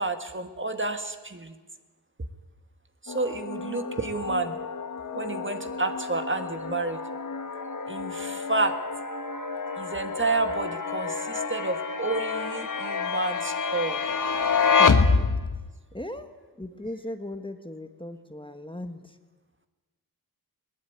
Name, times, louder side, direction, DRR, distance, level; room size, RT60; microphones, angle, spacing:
voice 1, 0.0-1.6 3.0-4.6 5.1-7.0 7.9-8.8 9.8-14.0, right 3 dB, 30° right, 7 dB, 1.8 m, -30 dB
sound 1, 3.1-15.7, left 5 dB, 55° left, 1.5 m, -28 dB
voice 2, 15.9-16.3 16.6-19.2, left 1 dB, 15° left, 7 dB, 1.5 m, -37 dB
20.5 x 19.5 x 9.4 m, 1.3 s
wide cardioid pair, 85°, 38 cm